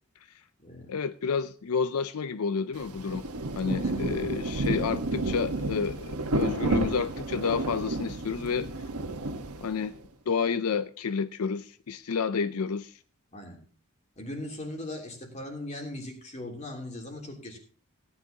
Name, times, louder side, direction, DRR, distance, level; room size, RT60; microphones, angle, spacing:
voice 1, 0.9-3.3 3.6-8.7 9.6-9.9 10.3-13.0, left 5 dB, 80° left, 13 dB, 0.5 m, -30 dB
Rain, 2.7-10.0, right 2 dB, 85° right, 1.3 m, -31 dB
voice 2, 14.2-17.6, left 1 dB, 30° left, 1 dB, 3.1 m, -39 dB
17.5 x 9.8 x 2.8 m, 0.40 s
head